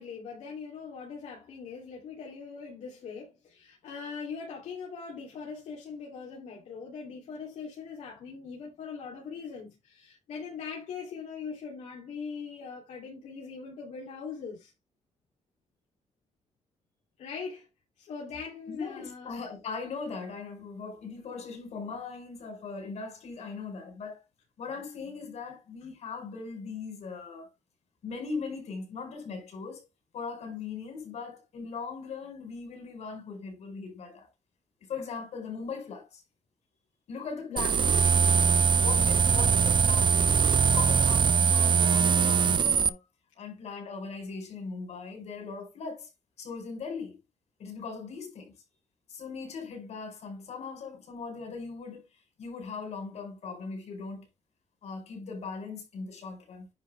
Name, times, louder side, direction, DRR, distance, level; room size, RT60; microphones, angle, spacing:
voice 1, 0.0-14.7 17.2-17.7 18.0-19.4 37.5-37.7, left 5 dB, 85° left, 3.2 m, -41 dB
voice 2, 18.7-24.2 24.6-27.5 28.0-29.9 30.1-34.3 34.8-36.2 37.1-38.3 38.7-40.2 40.6-43.0 43.4-46.1 46.4-47.2 47.6-48.5 49.1-54.3 54.8-56.7, left 5 dB, 70° left, 4.7 m, -39 dB
sound 1, 37.6-42.9, right 6 dB, 40° right, 0.6 m, -22 dB
10.0 x 5.2 x 3.5 m
cardioid pair, 115°, 12 cm